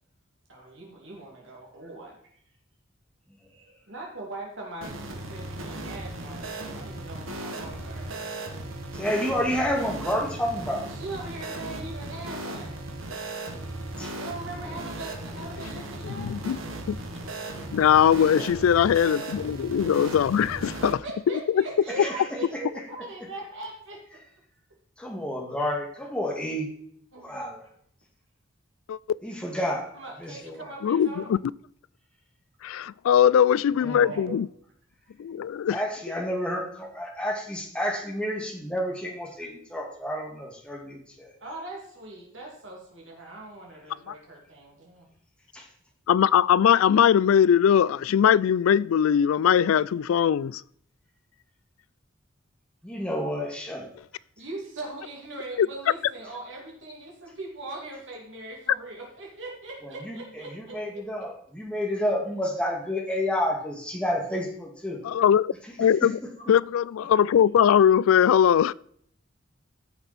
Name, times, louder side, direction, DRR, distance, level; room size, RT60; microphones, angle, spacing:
voice 1, 0.5-2.4 3.5-8.2 10.8-12.8 14.1-16.3 20.8-24.0 27.1-27.7 29.6-29.7 29.9-31.3 33.8-34.4 41.4-45.1 54.4-61.0 66.5-66.6, right 2 dB, 70° right, 2.4 m, -40 dB
sound 1, 4.8-20.9, right 1 dB, 85° right, 1.6 m, -37 dB
voice 2, 8.9-10.9 14.0-14.1 14.7-14.8 18.3-18.5 22.0-22.1 22.5-22.6 25.0-26.7 27.2-27.6 29.2-29.9 30.2-30.7 33.8-34.1 35.7-41.3 45.5-45.7 52.8-54.0 59.8-60.2 60.5-65.0 65.6-66.3, equal, 5° left, 1.8 m, -30 dB
voice 3, 16.0-16.6 16.9-17.0 17.7-20.7 28.9-29.0 30.8-31.4 32.6-34.5 35.2-35.8 46.1-50.6 55.6-55.7 65.0-65.5 65.8-66.1 66.5-68.7, left 8 dB, 90° left, 0.3 m, -20 dB
14.0 x 6.1 x 4.2 m
head